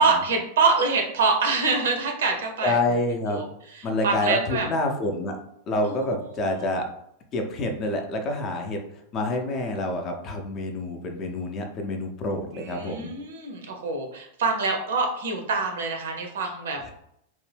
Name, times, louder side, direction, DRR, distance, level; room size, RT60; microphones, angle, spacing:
voice 1, 0.0-2.8 3.3-3.5 3.7-4.7 5.8-6.1 6.5-6.7 12.5-16.9, right 4 dB, 60° right, 3 dB, 0.6 m, -25 dB
voice 2, 2.6-3.4 3.8-5.4 5.7-6.8 7.3-8.8 9.1-13.1 16.8-16.9, left 2 dB, 30° left, 3 dB, 0.5 m, -27 dB
2.6 x 2.1 x 3.3 m, 0.75 s
figure-of-eight pair, 90°, 0 cm